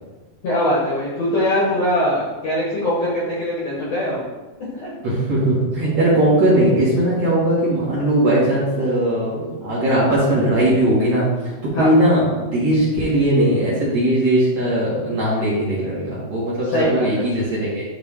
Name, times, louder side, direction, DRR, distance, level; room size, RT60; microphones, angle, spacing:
voice 1, 0.4-4.2 4.7-4.9 11.7-11.9 16.7-17.2, equal, 60° left, -7 dB, 1.9 m, -21 dB
voice 2, 5.0-11.3 11.8-17.8, right 1 dB, 50° right, -8 dB, 2.3 m, -19 dB
10.5 x 3.6 x 3.7 m, 1.2 s
omnidirectional pair, 4.6 m